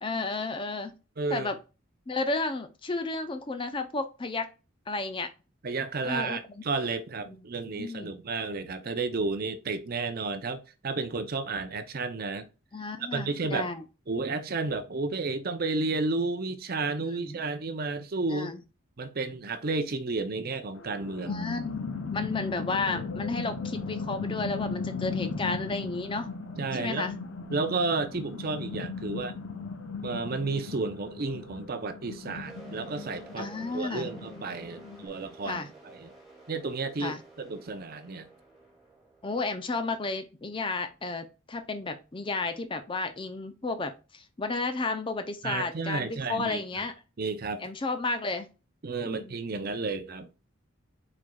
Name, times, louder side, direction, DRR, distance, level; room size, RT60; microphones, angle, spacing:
voice 1, 0.0-0.9 1.3-1.6 2.1-4.5 4.9-5.3 6.0-6.6 7.3-7.4 7.7-8.1 12.7-13.8 17.0-17.4 18.3-18.6 21.3-21.7 22.1-26.3 26.8-27.1 33.4-34.1 35.5-35.7 37.0-37.2 39.2-46.9 47.6-48.5 49.0-49.4, left 3 dB, 25° left, 0.5 m, -32 dB
voice 2, 1.2-1.5 5.6-12.5 13.1-13.7 14.1-18.5 19.0-21.4 26.6-27.1 27.5-29.4 30.0-35.6 35.9-36.1 36.5-38.3 45.4-46.6 47.2-47.6 48.8-50.3, right 3 dB, 45° right, 0.6 m, -32 dB
sound 1, 20.8-35.1, left 4 dB, 65° left, 0.7 m, -37 dB
sound 2, 32.5-40.1, right 3 dB, ahead, 2.0 m, -51 dB
4.9 x 4.2 x 2.3 m
head